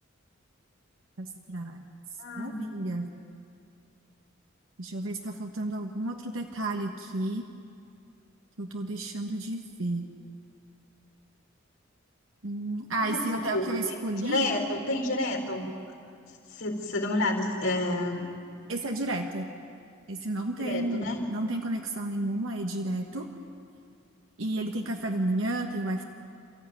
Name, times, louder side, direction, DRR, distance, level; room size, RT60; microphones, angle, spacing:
voice 1, 1.2-1.8 2.4-3.1 4.8-7.4 8.6-10.1 12.4-14.5 18.7-19.5 20.1-23.3 24.4-26.0, right 1 dB, 80° right, 2 dB, 1.4 m, -32 dB
voice 2, 2.2-2.6 13.0-15.7 16.6-18.2 20.6-21.2, left 2 dB, 85° left, 1 dB, 4.4 m, -30 dB
28.5 x 14.5 x 9.3 m, 2.4 s
head